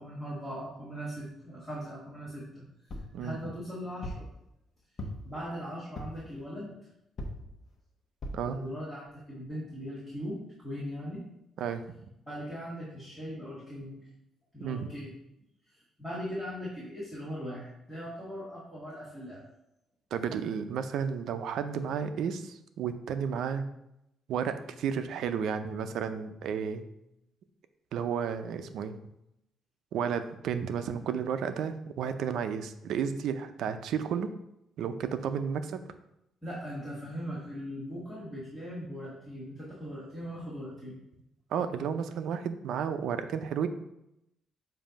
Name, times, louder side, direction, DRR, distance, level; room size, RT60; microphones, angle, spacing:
voice 1, 0.0-2.6 2.9-4.3 5.2-6.7 8.4-11.2 12.2-14.1 14.5-15.1 15.7-19.4 36.4-41.0, equal, ahead, -8 dB, 1.7 m, -39 dB
sound 1, 2.9-3.2 4.0-4.3 5.0-5.4 6.0-6.3 7.2-7.5 8.2-8.5 9.1-9.2 9.4-9.5, left 1 dB, 40° left, 1.0 m, -39 dB
voice 2, 20.1-23.6 24.3-26.9 27.9-29.0 29.9-34.3 34.8-35.8 41.5-43.7, right 7 dB, 75° right, 10 dB, 0.5 m, -32 dB
7.4 x 2.7 x 5.1 m, 0.83 s
cardioid pair, 125°, 0 cm